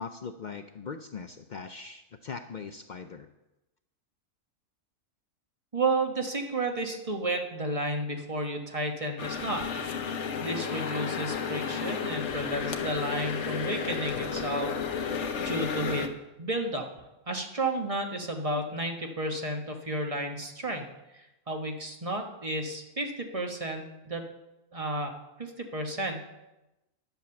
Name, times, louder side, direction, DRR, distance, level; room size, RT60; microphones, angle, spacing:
voice 1, 0.0-3.3, left 5 dB, 85° left, 8 dB, 0.4 m, -40 dB
voice 2, 5.7-9.8 10.4-16.1 16.4-16.9 17.3-20.9 21.1-24.2 24.7-25.1 25.4-26.3, right 2 dB, 25° right, 3 dB, 1.2 m, -32 dB
sound 1, 9.2-16.1, left 6 dB, 60° left, 1.2 m, -32 dB
10.5 x 8.1 x 7.0 m, 0.98 s
omnidirectional pair, 1.4 m